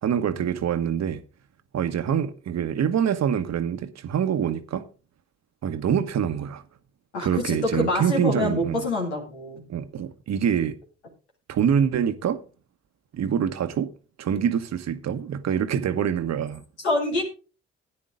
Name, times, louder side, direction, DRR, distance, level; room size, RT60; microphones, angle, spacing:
voice 1, 0.0-1.2 1.7-4.9 5.6-6.6 7.2-8.9 9.7-10.8 11.5-12.4 13.1-13.9 14.2-16.6, right 8 dB, 55° right, 1.2 m, -25 dB
voice 2, 7.1-9.6 16.8-17.2, left 2 dB, 90° left, 2.2 m, -26 dB
13.0 x 9.6 x 3.7 m
hypercardioid pair, 40°, 33 cm